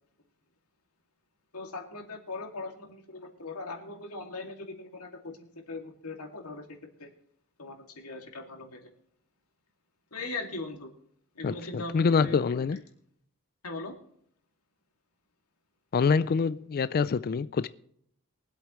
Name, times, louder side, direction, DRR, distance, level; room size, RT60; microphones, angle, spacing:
voice 1, 1.5-7.1 7.6-8.8 10.1-10.9 11.3-12.8 13.6-13.9, left 3 dB, 85° left, 2.4 m, -40 dB
voice 2, 11.4-12.8 15.9-17.7, left 5 dB, 40° left, 0.3 m, -26 dB
23.0 x 8.2 x 3.1 m
head